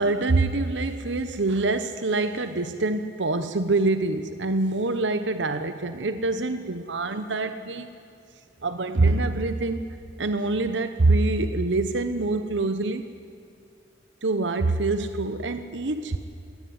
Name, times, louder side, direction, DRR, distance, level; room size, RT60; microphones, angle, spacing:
voice 1, 0.0-7.9 8.6-9.9 10.2-13.0 14.2-16.2, right 2 dB, 80° right, 10 dB, 1.0 m, -25 dB
21.5 x 18.5 x 9.6 m, 2.6 s
head